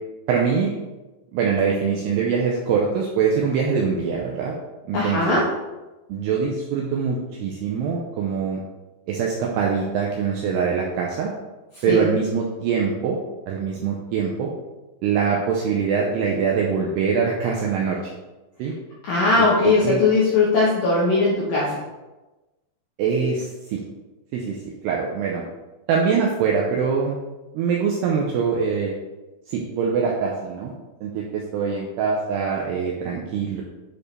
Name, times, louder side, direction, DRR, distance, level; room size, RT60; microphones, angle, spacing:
voice 1, 0.3-0.7 1.3-4.6 4.9-5.4 6.1-8.6 9.1-11.3 11.8-13.2 13.5-14.5 15.0-18.1 18.6-18.7 19.6-20.0 23.0-23.8 24.3-24.6 24.8-25.4 25.9-27.2 27.5-28.9 29.5-30.7 31.0-33.6, right 6 dB, 85° right, -1 dB, 2.4 m, -23 dB
voice 2, 4.9-5.5 11.7-12.0 19.0-21.8, left 3 dB, 70° left, -6 dB, 2.1 m, -19 dB
9.8 x 4.5 x 3.3 m, 1.1 s
omnidirectional pair, 5.5 m